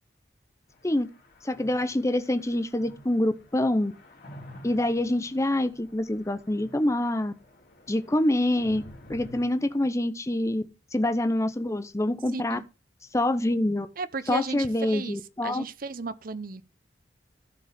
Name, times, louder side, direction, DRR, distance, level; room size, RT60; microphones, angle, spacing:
sound 1, 0.7-9.4, left 1 dB, 55° left, 2.7 m, -50 dB
voice 1, 1.4-3.9 4.6-7.3 7.9-8.8 9.1-10.6 10.9-12.6 13.1-13.9 14.3-15.6, left 1 dB, 15° left, 0.7 m, -26 dB
voice 2, 12.3-12.6 14.0-16.6, right 4 dB, 50° right, 0.7 m, -35 dB
14.5 x 5.0 x 3.5 m
head